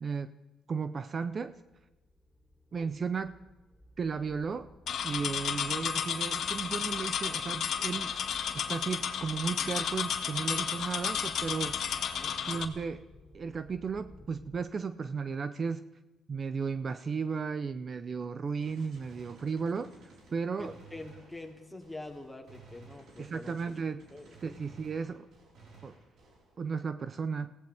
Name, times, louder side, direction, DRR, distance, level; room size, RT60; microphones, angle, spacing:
voice 1, 0.0-0.3 0.7-1.6 2.7-3.3 4.0-4.7 5.0-8.2 8.5-11.8 12.5-13.0 13.3-15.9 16.3-19.9 20.3-20.7 23.2-24.0 24.4-25.3 25.8-25.9 26.6-27.6, right 5 dB, 45° right, 12 dB, 0.6 m, -34 dB
sound 1, 1.3-14.6, left 1 dB, 5° right, 5.1 m, -56 dB
sound 2, 4.9-12.6, left 8 dB, 65° left, 1.5 m, -32 dB
Gunshot gunfire, 18.6-26.6, right 3 dB, 65° right, 4.5 m, -56 dB
voice 2, 20.6-23.5 24.1-24.6, left 2 dB, 10° left, 1 dB, 2.8 m, -45 dB
23.5 x 16.5 x 3.5 m, 1.1 s
cardioid pair, 90°, 0 cm